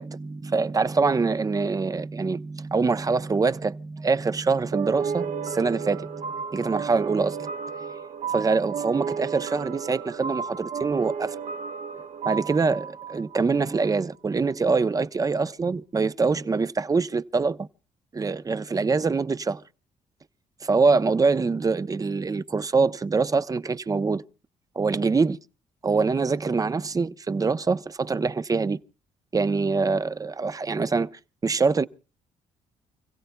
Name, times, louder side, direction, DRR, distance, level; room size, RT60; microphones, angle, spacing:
voice 1, 0.0-7.5 8.3-11.4 12.2-17.7 18.1-19.6 20.6-24.2 24.8-25.4 25.8-28.8 29.3-31.1 31.4-31.9, right 4 dB, 25° right, 0.7 m, -24 dB
sound 1, 4.7-14.0, right 6 dB, 65° right, 1.3 m, -33 dB
29.5 x 16.0 x 2.2 m
cardioid pair, 90°, 14 cm